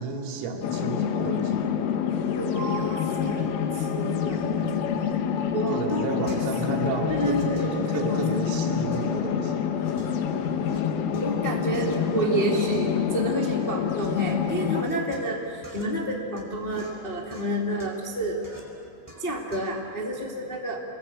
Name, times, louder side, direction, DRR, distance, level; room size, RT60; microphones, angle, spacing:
voice 1, 0.0-1.7 3.4-3.5 5.7-9.7 10.5-10.6, right 5 dB, 80° right, 1 dB, 5.2 m, -32 dB
sound 1, 0.6-14.8, left 7 dB, 80° left, 3.8 m, -27 dB
voice 2, 2.3-3.4 3.7-4.5 5.5-6.4 6.7-8.2 11.2-18.4 19.2-20.8, right 1 dB, 60° left, -1 dB, 0.5 m, -29 dB
sound 2, 6.0-6.8 7.1-8.4 8.9-10.8 11.1-14.1 14.5-19.8, left 1 dB, 5° left, 4.0 m, -46 dB
28.0 x 21.0 x 8.7 m, 2.8 s
omnidirectional pair, 5.7 m